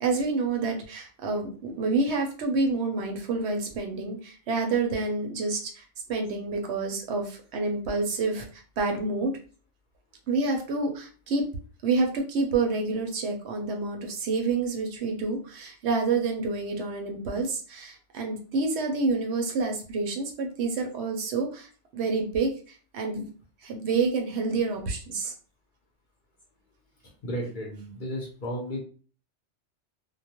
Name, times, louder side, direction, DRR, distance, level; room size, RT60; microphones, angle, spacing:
voice 1, 0.0-5.8 6.1-9.3 10.3-11.4 11.8-23.3 23.6-25.3, right 3 dB, 70° right, 2 dB, 0.8 m, -28 dB
voice 2, 27.2-28.8, equal, 50° left, -1 dB, 0.7 m, -33 dB
2.2 x 2.1 x 2.8 m, 0.40 s
omnidirectional pair, 1.3 m